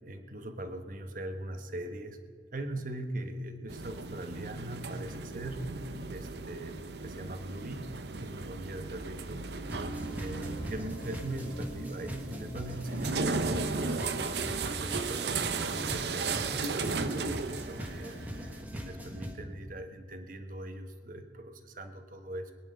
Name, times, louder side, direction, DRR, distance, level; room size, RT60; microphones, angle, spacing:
voice 1, 0.0-2.2 2.5-5.7 6.1-7.9 8.2-9.4 10.2-14.3 14.6-18.2 18.7-22.5, right 1 dB, 50° right, 7 dB, 1.1 m, -41 dB
sound 1, 3.7-18.6, right 4 dB, 70° right, 0.8 m, -36 dB
sound 2, 9.7-19.4, equal, 10° right, 1.2 m, -41 dB
22.0 x 10.0 x 5.3 m, 2.1 s
head